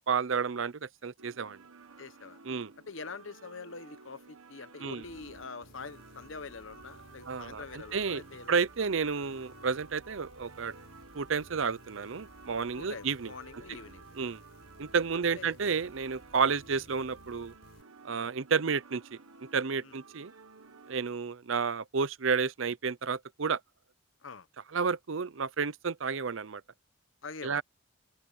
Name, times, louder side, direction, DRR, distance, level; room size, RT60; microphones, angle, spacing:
voice 1, 0.0-1.6 2.4-2.7 4.8-5.0 7.3-8.2 8.5-10.7 11.1-13.3 14.2-14.4 14.8-17.5 18.0-19.2 19.5-20.3 20.9-23.6 24.7-26.6 27.4-27.6, right 5 dB, 70° right, 0.7 m, -31 dB
sound 1, 1.2-21.0, right 4 dB, 90° right, 1.5 m, -54 dB
voice 2, 2.0-2.4 2.9-8.5 12.7-14.2 15.2-15.6 18.1-18.3 19.8-20.0 24.2-24.5 27.2-27.6, left 4 dB, 70° left, 1.0 m, -45 dB
sound 2, 5.0-17.8, left 1 dB, 50° left, 6.7 m, -57 dB
head